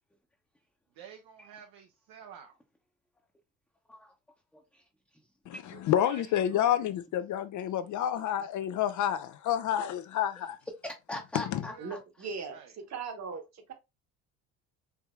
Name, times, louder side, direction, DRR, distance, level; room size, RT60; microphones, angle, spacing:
voice 1, 0.9-2.6 5.6-5.8 6.1-6.6 11.7-12.0 12.5-12.7, right 8 dB, 60° right, 0.8 m, -51 dB
voice 2, 5.5-10.6 11.3-11.6, left 10 dB, 50° left, 0.5 m, -29 dB
voice 3, 10.8-12.0, left 1 dB, 5° left, 0.8 m, -41 dB
voice 4, 11.8-13.7, right 5 dB, 40° right, 1.2 m, -39 dB
4.7 x 2.7 x 2.3 m
hypercardioid pair, 70°, 40 cm